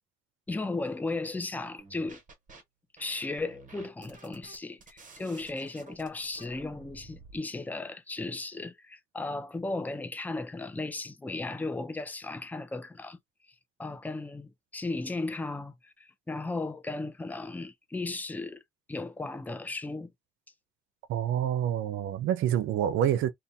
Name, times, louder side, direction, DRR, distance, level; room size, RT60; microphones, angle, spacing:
voice 1, 0.5-2.2 3.0-13.2 13.8-18.6 18.9-20.1, left 3 dB, 10° left, 0.4 m, -35 dB
sound 1, 1.8-2.6 3.0-7.4, right 3 dB, 40° right, 1.0 m, -52 dB
voice 2, 21.1-23.3, right 10 dB, 80° right, 0.5 m, -27 dB
2.4 x 2.2 x 2.6 m
cardioid pair, 90°, 20 cm